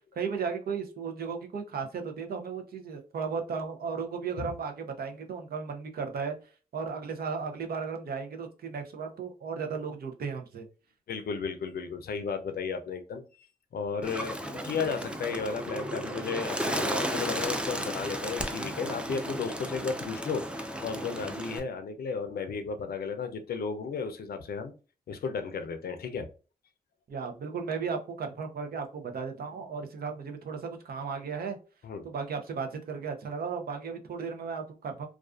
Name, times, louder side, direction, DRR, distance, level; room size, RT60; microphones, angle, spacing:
voice 1, 0.2-6.3 6.7-10.6 27.1-31.6 32.0-35.1, right 5 dB, 70° right, 5 dB, 0.6 m, -35 dB
voice 2, 11.1-13.5 13.7-24.7 25.1-26.3 31.8-32.1, left 5 dB, 70° left, 8 dB, 0.5 m, -34 dB
Bird, 14.0-21.6, right 1 dB, 5° right, 0.4 m, -34 dB
2.4 x 2.3 x 2.3 m, 0.35 s
cardioid pair, 50°, 16 cm